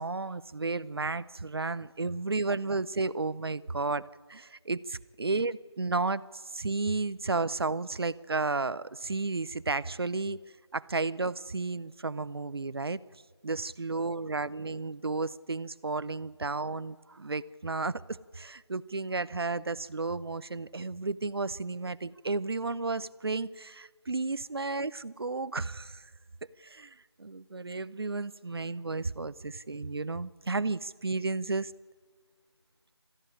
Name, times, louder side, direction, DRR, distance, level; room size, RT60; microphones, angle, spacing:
voice 1, 0.0-6.2 6.5-10.4 10.7-13.0 13.4-26.0 26.6-31.7, right 3 dB, 60° right, 18 dB, 0.8 m, -33 dB
20.0 x 14.0 x 9.9 m, 1.5 s
figure-of-eight pair, 170°, 14 cm